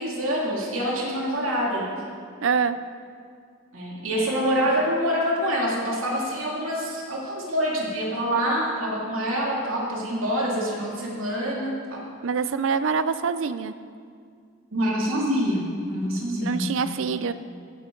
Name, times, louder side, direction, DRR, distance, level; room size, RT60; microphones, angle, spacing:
voice 1, 0.0-1.9 3.7-12.0 14.7-16.7, equal, 80° right, -3 dB, 2.7 m, -26 dB
voice 2, 2.4-2.8 12.2-13.7 16.4-17.3, right 5 dB, 65° right, 12 dB, 0.5 m, -25 dB
16.0 x 9.6 x 3.9 m, 2.2 s
head